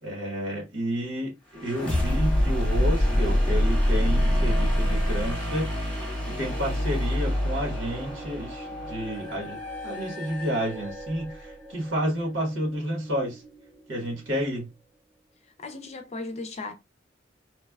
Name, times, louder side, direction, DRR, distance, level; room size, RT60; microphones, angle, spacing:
voice 1, 0.0-13.4 13.9-14.7, equal, 85° right, 1.2 m, -31 dB
sound 1, 1.6-11.3, equal, 5° left, 1.0 m, -26 dB
sound 2, 7.5-14.8, right 2 dB, 35° right, 0.5 m, -45 dB
voice 2, 15.6-16.7, left 3 dB, 35° left, 0.5 m, -36 dB
3.1 x 2.1 x 2.3 m
head